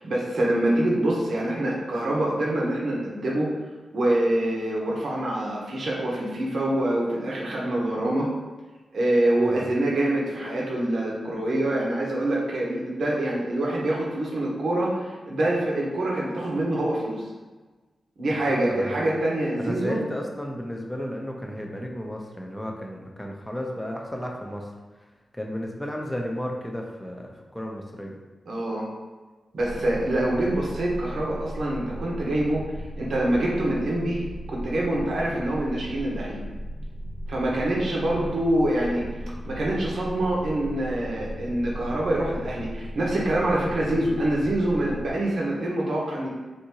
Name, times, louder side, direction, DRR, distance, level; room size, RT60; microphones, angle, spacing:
voice 1, 0.0-3.5 3.9-8.3 8.9-17.3 18.2-20.0 28.5-28.8 29.5-32.6 33.0-36.4 37.3-39.0 39.4-46.3, right 1 dB, 75° right, -4 dB, 0.9 m, -25 dB
voice 2, 18.3-19.1 19.6-24.7 25.3-28.1, equal, 10° left, 0 dB, 0.6 m, -33 dB
sound 1, 29.6-45.1, equal, 25° right, 0.9 m, -37 dB
3.6 x 2.7 x 2.9 m, 1.3 s
cardioid pair, 60°, 0 cm